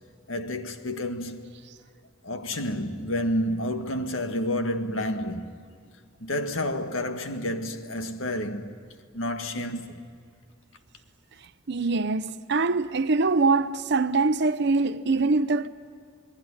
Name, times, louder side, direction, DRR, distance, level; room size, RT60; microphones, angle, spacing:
voice 1, 0.3-1.5 2.2-5.5 6.2-8.7 9.1-10.0, left 1 dB, 85° left, 1.7 m, -30 dB
voice 2, 11.7-15.7, right 3 dB, 60° right, 0.7 m, -23 dB
28.0 x 20.0 x 9.8 m
head